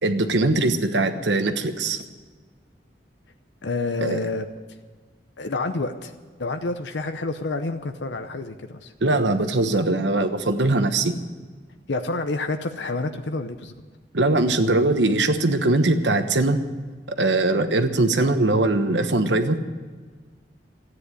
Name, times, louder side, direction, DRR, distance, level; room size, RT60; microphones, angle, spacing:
voice 1, 0.0-2.0 4.0-4.2 9.0-11.2 14.1-16.6 17.2-19.6, right 2 dB, 80° right, 8 dB, 1.2 m, -21 dB
voice 2, 3.6-4.5 5.4-6.1 6.4-8.9 11.9-13.7, left 3 dB, 80° left, 7 dB, 0.8 m, -28 dB
14.0 x 9.8 x 9.8 m, 1.5 s
head